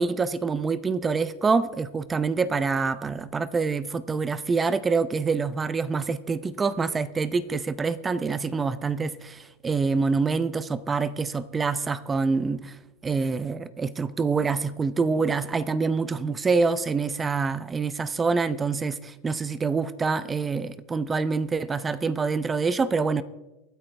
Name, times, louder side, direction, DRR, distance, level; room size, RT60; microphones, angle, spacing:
voice 1, 0.0-12.8 13.0-23.2, right 4 dB, 15° right, 0.6 m, -26 dB
24.0 x 9.1 x 3.4 m
supercardioid pair, 120°, 0 cm